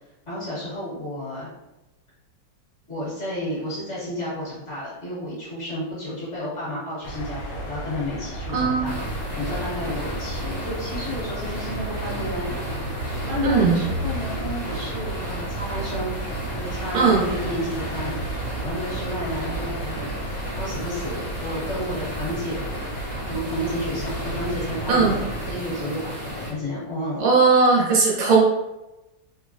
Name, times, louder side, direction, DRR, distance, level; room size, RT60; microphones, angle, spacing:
voice 1, 0.3-1.5 2.9-12.5 13.3-16.2 16.5-20.1 20.6-22.6 23.3-26.2 26.5-27.2, equal, 40° left, -10 dB, 1.6 m, -31 dB
sound 1, 7.0-25.6, right 2 dB, 75° left, 1.3 m, -33 dB
voice 2, 8.5-9.0 13.4-13.8 16.9-17.2 24.9-25.2 27.2-28.4, right 4 dB, 90° right, -4 dB, 1.6 m, -18 dB
sound 2, 8.8-26.5, equal, 65° right, 0.4 m, -34 dB
3.8 x 2.1 x 2.6 m, 0.98 s
omnidirectional pair, 2.0 m